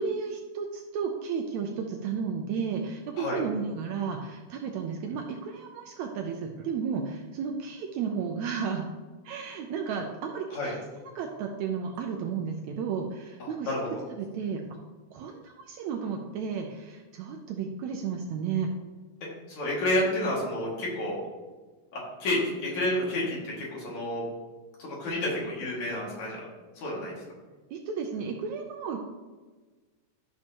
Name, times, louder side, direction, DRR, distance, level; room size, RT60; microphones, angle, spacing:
voice 1, 0.0-8.9 9.3-10.8 11.2-13.7 14.2-14.6 15.1-18.7 27.7-29.0, right 6 dB, 75° right, 2 dB, 1.9 m, -33 dB
voice 2, 13.4-13.8 19.5-21.2 21.9-24.2 24.8-26.4 26.8-27.1, left 1 dB, 65° left, -5 dB, 3.6 m, -30 dB
12.0 x 6.4 x 3.0 m, 1.3 s
omnidirectional pair, 3.5 m